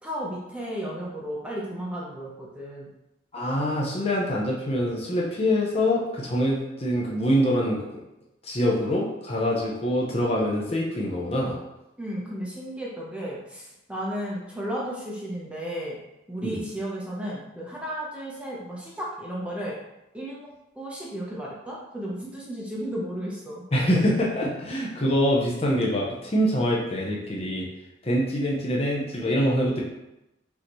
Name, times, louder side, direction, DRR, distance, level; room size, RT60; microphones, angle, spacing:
voice 1, 0.0-2.9 12.0-16.0 16.3-19.8 20.1-20.5 20.8-23.6, equal, 5° right, -5 dB, 0.7 m, -34 dB
voice 2, 3.3-8.0 8.4-11.6 16.4-16.6 23.7-27.7 28.0-29.8, equal, 30° left, -3 dB, 0.7 m, -25 dB
5.5 x 2.8 x 3.0 m, 0.91 s
head